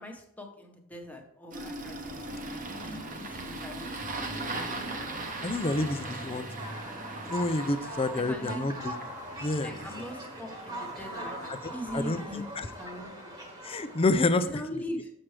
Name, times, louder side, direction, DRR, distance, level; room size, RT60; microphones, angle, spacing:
voice 1, 0.0-2.0 2.7-4.1 8.1-8.7 9.6-13.3 14.4-15.1, left 1 dB, 5° left, 2 dB, 1.0 m, -41 dB
Engine starting, 1.5-13.9, right 2 dB, 35° right, 0.9 m, -40 dB
sound 1, 4.2-14.1, right 1 dB, 15° right, 1.3 m, -42 dB
voice 2, 5.4-6.7 7.2-8.9 9.4-9.7 11.5-12.2 12.6-12.7 13.6-14.5, left 2 dB, 25° left, 10 dB, 0.4 m, -28 dB
7.4 x 6.0 x 3.3 m, 0.83 s
head